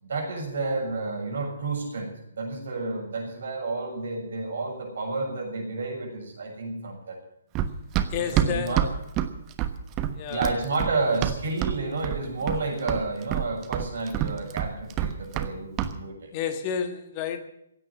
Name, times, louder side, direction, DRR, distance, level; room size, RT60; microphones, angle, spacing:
voice 1, 0.0-7.2 8.1-8.8 10.3-16.3, right 3 dB, 60° right, 1 dB, 6.9 m, -30 dB
Run, 7.6-11.8 12.0-12.6 12.9-15.5 15.8-16.0, right 11 dB, 25° right, 1.2 m, -27 dB
voice 2, 8.1-9.0 10.1-10.7 16.3-17.4, left 8 dB, 30° left, 8 dB, 1.5 m, -31 dB
16.5 x 8.9 x 9.7 m, 0.77 s
figure-of-eight pair, 135°, 0 cm